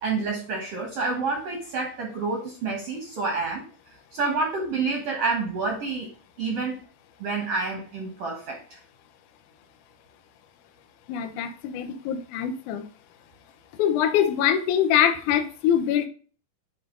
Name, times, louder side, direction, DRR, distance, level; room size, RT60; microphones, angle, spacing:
voice 1, 0.0-3.6 4.1-6.1 6.4-6.8 7.2-8.8, right 4 dB, 60° right, 1 dB, 1.6 m, -28 dB
voice 2, 11.1-12.8 13.8-16.1, left 9 dB, 75° left, 7 dB, 1.9 m, -23 dB
9.0 x 3.3 x 3.7 m, 0.38 s
omnidirectional pair, 4.5 m